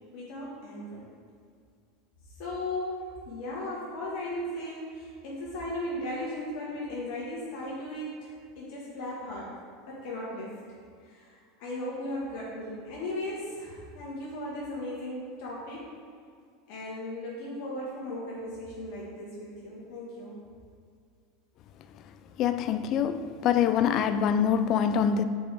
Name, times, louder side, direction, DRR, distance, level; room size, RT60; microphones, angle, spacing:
voice 1, 0.1-1.1 2.4-9.5 9.9-10.5 11.0-15.9 16.7-20.4, left 1 dB, 65° left, 1.7 m, -37 dB
voice 2, 22.4-25.2, left 8 dB, 45° left, 0.4 m, -25 dB
5.2 x 5.1 x 4.8 m
supercardioid pair, 115°, 0 cm